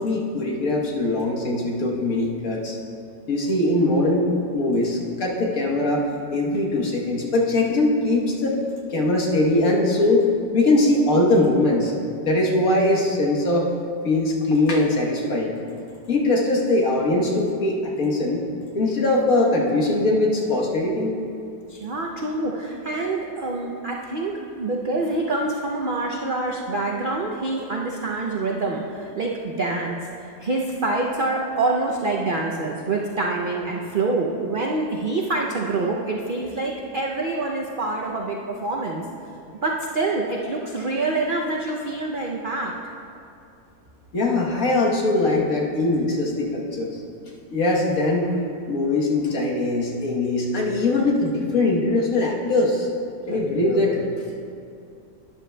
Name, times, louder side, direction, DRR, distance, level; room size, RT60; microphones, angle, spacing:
voice 1, 0.0-2.8 3.3-6.0 6.3-11.9 12.2-13.7 14.0-15.5 16.1-18.4 18.7-21.1 44.1-47.0 47.5-48.3 48.7-52.9 53.3-54.4, left 2 dB, 60° left, -2 dB, 1.6 m, -21 dB
voice 2, 21.7-39.0 39.6-42.7, right 2 dB, 80° right, -1 dB, 0.4 m, -26 dB
12.0 x 10.0 x 2.2 m, 2.5 s
omnidirectional pair, 1.7 m